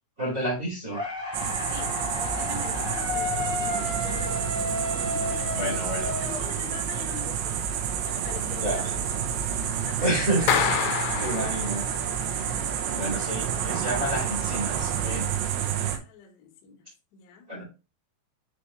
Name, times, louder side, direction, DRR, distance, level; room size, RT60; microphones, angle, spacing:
voice 1, 0.2-1.0 5.6-6.1 8.6-8.9 10.0-10.6 11.2-11.8 12.8-15.3 17.5-17.6, right 1 dB, 30° right, 1.4 m, -29 dB
sound 1, 0.9-7.0, left 2 dB, ahead, 1.4 m, -32 dB
sound 2, 1.3-16.0, right 8 dB, 75° right, 2.9 m, -29 dB
voice 2, 1.6-5.9 6.2-7.6 8.0-9.0 9.8-10.2 11.2-11.7 15.9-17.5, left 8 dB, 65° left, 3.2 m, -44 dB
Clapping, 10.5-12.1, left 8 dB, 90° left, 3.3 m, -27 dB
9.6 x 3.4 x 3.1 m
omnidirectional pair, 5.8 m